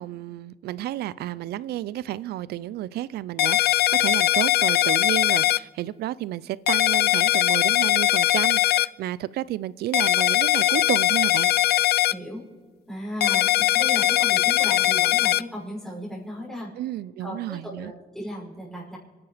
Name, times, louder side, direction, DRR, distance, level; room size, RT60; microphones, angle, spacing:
voice 1, 0.0-11.5 16.8-17.9, right 14 dB, 90° right, 0.5 m, -31 dB
sound 1, 3.4-5.6 6.7-8.9 9.9-12.1 13.2-15.4, left 15 dB, 80° left, 0.4 m, -20 dB
voice 2, 12.1-12.4 12.9-16.7 17.2-19.0, equal, ahead, 5.8 m, -36 dB
25.5 x 10.5 x 5.0 m
cardioid pair, 85°, 16 cm